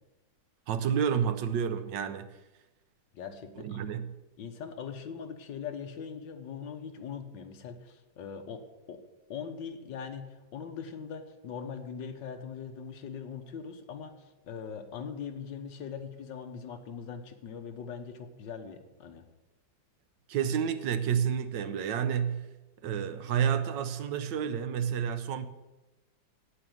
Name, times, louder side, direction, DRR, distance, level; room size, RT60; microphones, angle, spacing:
voice 1, 0.7-2.3 3.6-4.1 20.3-22.5 22.8-25.5, right 8 dB, 75° right, 1.4 m, -30 dB
voice 2, 3.1-3.8 4.4-9.0 9.3-19.2, left 6 dB, 75° left, 1.7 m, -41 dB
9.2 x 8.5 x 7.8 m
omnidirectional pair, 2.1 m